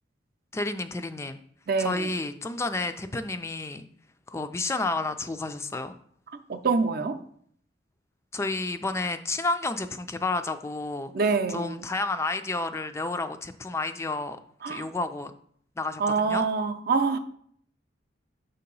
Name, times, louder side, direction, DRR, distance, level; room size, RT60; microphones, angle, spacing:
voice 1, 0.5-1.4 1.8-3.8 4.3-6.0 8.3-14.4 14.7-15.3 15.8-16.5, left 3 dB, 15° left, 0.3 m, -31 dB
voice 2, 1.7-2.1 6.5-7.2 11.1-11.8 14.6-14.9 16.0-17.2, right 4 dB, 55° right, 0.5 m, -25 dB
6.7 x 2.8 x 5.3 m
head